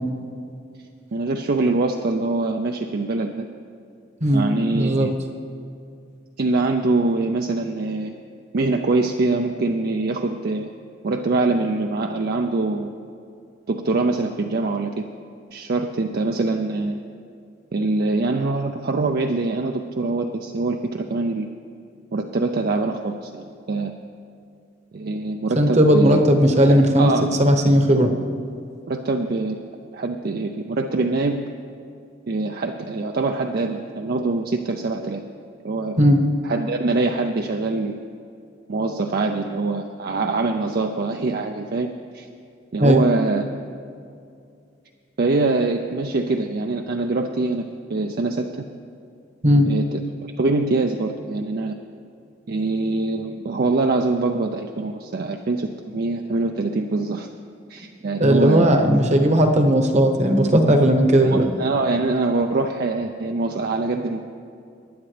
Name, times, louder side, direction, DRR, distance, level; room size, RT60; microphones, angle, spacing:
voice 1, 1.1-3.5 4.3-5.1 6.4-8.1 8.5-10.7 11.0-12.9 13.7-15.0 15.5-17.0 17.7-21.5 22.1-24.1 24.9-26.2 26.6-27.3 28.9-29.6 29.9-31.4 32.3-35.2 35.6-36.0 36.4-38.0 38.7-42.3 42.7-43.4 45.2-48.5 49.6-51.8 52.5-57.3 57.7-58.8 61.2-64.2, right 3 dB, 55° right, 4 dB, 0.5 m, -24 dB
voice 2, 4.2-5.1 25.6-27.1 27.4-28.1 36.0-36.2 42.8-43.0 49.4-49.7 58.2-61.4, equal, 40° right, 4 dB, 1.0 m, -16 dB
19.0 x 9.8 x 3.3 m, 2.4 s
head